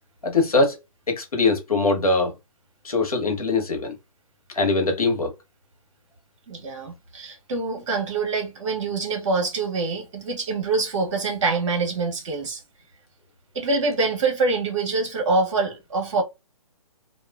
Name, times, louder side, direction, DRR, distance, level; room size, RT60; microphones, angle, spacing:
voice 1, 0.2-0.8 1.1-2.3 2.8-3.9 4.5-5.3, left 3 dB, 85° left, 1.1 m, -22 dB
voice 2, 6.5-12.6 13.5-16.2, right 3 dB, 55° right, 1.2 m, -25 dB
2.5 x 2.4 x 2.3 m
figure-of-eight pair, 135°, 18 cm